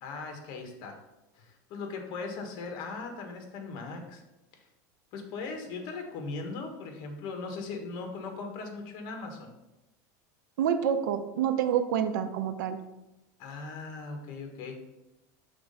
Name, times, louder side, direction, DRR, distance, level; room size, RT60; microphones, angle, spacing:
voice 1, 0.0-1.0 1.3-4.2 4.5-4.7 5.1-9.5 13.4-14.7, left 4 dB, 50° left, 4 dB, 1.3 m, -39 dB
voice 2, 10.6-12.8, right 9 dB, 90° right, 9 dB, 0.7 m, -27 dB
6.0 x 3.7 x 5.4 m, 0.95 s
supercardioid pair, 145°, 10 cm